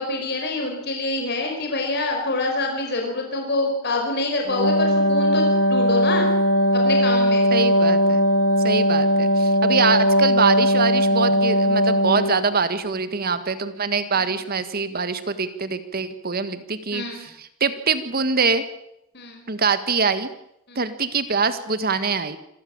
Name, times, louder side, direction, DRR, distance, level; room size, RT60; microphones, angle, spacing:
voice 1, 0.0-6.3 6.7-7.5 12.1-12.2 14.1-14.3 16.9-17.2 19.1-19.4 20.7-20.8, left 2 dB, 55° left, 2 dB, 5.0 m, -26 dB
Wind instrument woodwind instrument, 4.5-12.4, equal, 75° left, 1.9 m, -19 dB
voice 2, 7.5-8.2 8.6-18.6 19.5-20.3 20.7-22.4, right 5 dB, 50° right, 11 dB, 1.6 m, -24 dB
26.5 x 14.5 x 8.7 m, 0.80 s
head